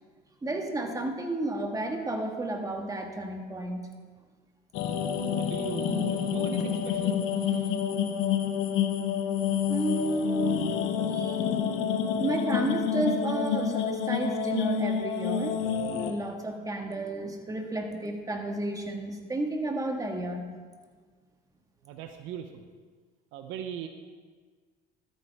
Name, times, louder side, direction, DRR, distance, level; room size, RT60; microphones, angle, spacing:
voice 1, 0.4-3.8 9.7-11.5 12.1-15.6 15.9-20.5, right 1 dB, 15° right, 3 dB, 1.8 m, -32 dB
sound 1, 4.7-16.1, left 7 dB, 75° left, 1.2 m, -28 dB
voice 2, 5.2-7.8 21.8-22.6 23.3-23.9, right 8 dB, 75° right, 7 dB, 0.9 m, -40 dB
13.0 x 8.7 x 3.6 m, 1.5 s
supercardioid pair, 85°, 21 cm